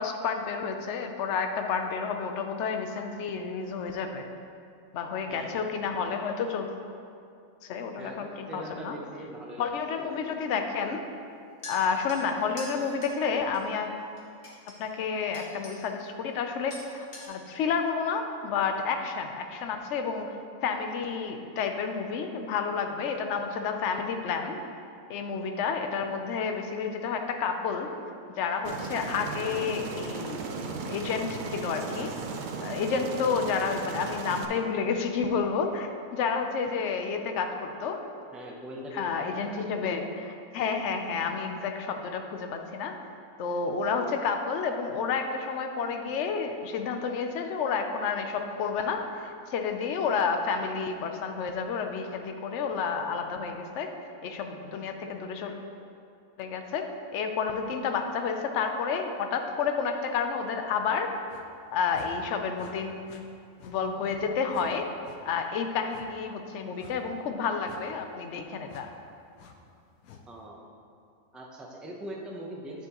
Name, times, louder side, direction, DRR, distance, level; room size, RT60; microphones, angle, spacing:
voice 1, 0.0-4.3 4.9-6.7 7.6-9.0 9.6-11.0 11.7-14.0 14.7-20.4 20.6-24.6 25.1-27.9 28.4-30.4 30.7-32.1 32.6-38.0 38.9-42.9 43.4-53.9 54.2-55.7 56.4-56.9 57.1-61.1 61.7-63.1 63.6-64.9 65.2-68.9, left 5 dB, 65° left, 5 dB, 0.9 m, -30 dB
voice 2, 5.3-5.9 8.0-10.0 38.3-39.5 70.3-70.6 71.3-72.9, equal, ahead, -2 dB, 0.4 m, -41 dB
sound 1, 11.6-13.6 14.2-14.7 15.3-16.0 16.2-16.4 16.7-17.3, equal, 45° left, 1.5 m, -44 dB
Aircraft, 28.6-34.4, right 4 dB, 85° right, 0.4 m, -36 dB
sound 2, 61.3-61.5 61.9-62.1 62.5-62.7 63.1-63.2 63.6-63.8 64.0-64.2 64.5-64.7 65.0-65.2 65.9-66.1 66.8-67.0 67.6-67.8 68.7-68.9 69.4-69.5 70.0-70.2, left 8 dB, 85° left, 1.1 m, -50 dB
8.9 x 7.0 x 3.0 m, 2.5 s
omnidirectional pair, 1.5 m